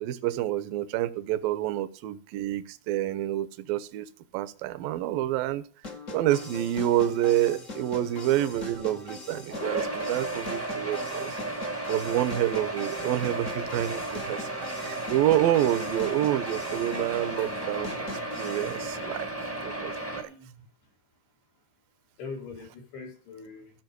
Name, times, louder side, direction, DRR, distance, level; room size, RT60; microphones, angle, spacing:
voice 1, 0.0-4.1 4.3-5.6 6.1-11.4 11.9-14.5 14.8-19.3 19.6-20.3, right 13 dB, 75° right, 12 dB, 2.3 m, -28 dB
sound 1, 5.8-18.8, left 3 dB, 45° left, 0.9 m, -41 dB
sound 2, 9.5-20.2, right 2 dB, 10° right, 0.6 m, -34 dB
voice 2, 20.0-20.6 22.2-23.7, left 4 dB, 90° left, -1 dB, 6.3 m, -42 dB
15.0 x 5.5 x 5.2 m, 0.41 s
omnidirectional pair, 4.7 m